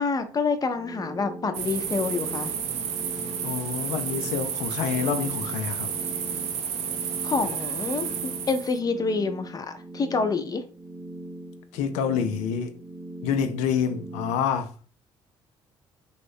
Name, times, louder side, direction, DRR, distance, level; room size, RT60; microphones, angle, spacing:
voice 1, 0.0-2.5 7.2-10.6, left 4 dB, 30° left, 0.6 m, -27 dB
sound 1, 0.6-14.3, right 1 dB, 15° right, 0.7 m, -41 dB
sound 2, 1.5-8.8, right 7 dB, 65° right, 0.5 m, -31 dB
voice 2, 3.4-5.9 11.7-12.8 13.2-14.7, left 7 dB, 80° left, 0.4 m, -27 dB
3.0 x 2.1 x 3.4 m
hypercardioid pair, 55°, 12 cm